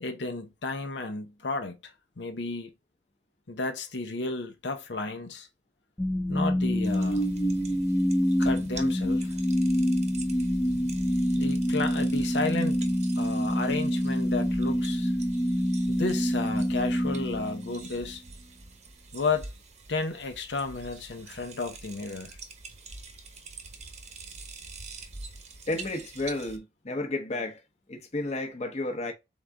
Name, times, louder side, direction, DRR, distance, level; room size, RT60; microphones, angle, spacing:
voice 1, 0.0-2.7 3.5-5.5 6.3-7.3 8.4-9.3 11.3-12.8 13.2-15.1 15.9-18.2 19.1-19.5 19.9-22.4, left 3 dB, 90° left, 0.8 m, -32 dB
sound 1, 6.0-18.1, equal, 10° left, 0.5 m, -26 dB
sound 2, 6.8-26.6, right 4 dB, 40° right, 0.9 m, -46 dB
voice 2, 25.7-27.6 27.9-29.1, left 2 dB, 40° left, 0.9 m, -32 dB
4.1 x 3.7 x 3.5 m
head